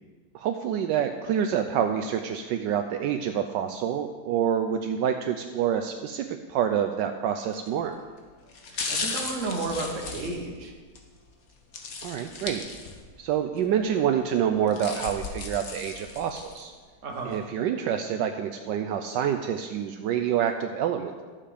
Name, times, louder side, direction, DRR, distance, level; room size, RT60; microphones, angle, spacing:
voice 1, 0.3-8.0 12.0-12.6 13.2-16.7 17.2-21.2, right 9 dB, 75° right, 6 dB, 1.2 m, -27 dB
sound 1, 7.5-7.8 8.5-11.0 11.7-13.2 13.6-13.7 14.4-16.6 17.1-17.2, left 4 dB, 50° left, 1.5 m, -36 dB
voice 2, 8.7-10.7 17.0-17.4, right 3 dB, 45° right, 1 dB, 1.6 m, -32 dB
12.5 x 7.5 x 5.0 m, 1.5 s
omnidirectional pair, 2.0 m